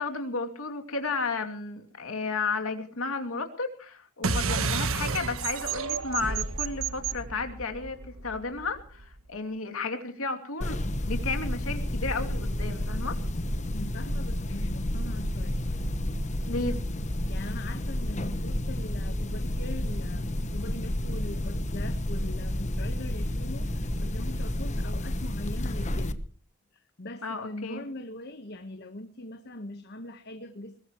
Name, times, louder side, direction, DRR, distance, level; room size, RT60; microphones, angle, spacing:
voice 1, 0.0-8.0 8.2-13.2 16.5-16.8 27.2-27.8, left 4 dB, 90° left, 5 dB, 2.7 m, -33 dB
sound 1, 4.2-9.1, right 5 dB, 85° right, 1.3 m, -31 dB
sound 2, 10.6-26.1, left 1 dB, 35° left, 1.1 m, -30 dB
voice 2, 13.7-15.7 17.3-26.2 26.7-30.8, left 1 dB, 50° left, 8 dB, 1.3 m, -41 dB
21.5 x 20.0 x 3.1 m, 0.40 s
head